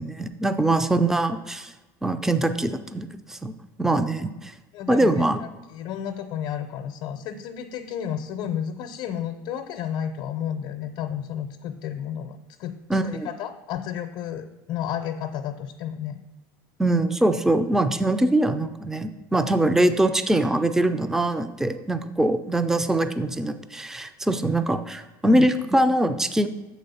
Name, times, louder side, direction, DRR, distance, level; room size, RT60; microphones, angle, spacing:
voice 1, 0.0-1.7 2.0-3.5 3.8-4.5 4.9-5.4 12.9-13.3 16.8-26.5, right 1 dB, 5° right, 9 dB, 0.4 m, -23 dB
voice 2, 4.7-12.7 13.1-16.2 25.2-25.5, left 9 dB, 60° left, 6 dB, 0.5 m, -32 dB
6.6 x 4.2 x 5.5 m, 1.0 s
supercardioid pair, 100°, 11 cm